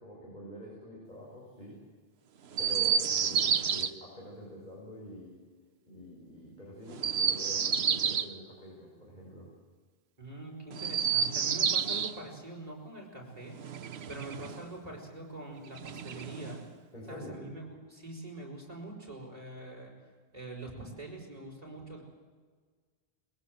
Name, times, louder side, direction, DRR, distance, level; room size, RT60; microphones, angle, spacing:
voice 1, 0.0-1.8 2.6-5.4 5.9-9.5 16.9-17.4, left 1 dB, 45° left, -4 dB, 6.1 m, -46 dB
Chirp tweet, 2.5-3.9 6.9-8.3 10.7-12.1 13.6-14.6 15.7-16.6, right 7 dB, 85° right, 1.1 m, -29 dB
voice 2, 10.2-16.6 17.1-19.9 20.3-22.0, right 2 dB, 40° right, -1 dB, 5.1 m, -44 dB
21.5 x 21.0 x 7.9 m, 1.5 s
omnidirectional pair, 1.0 m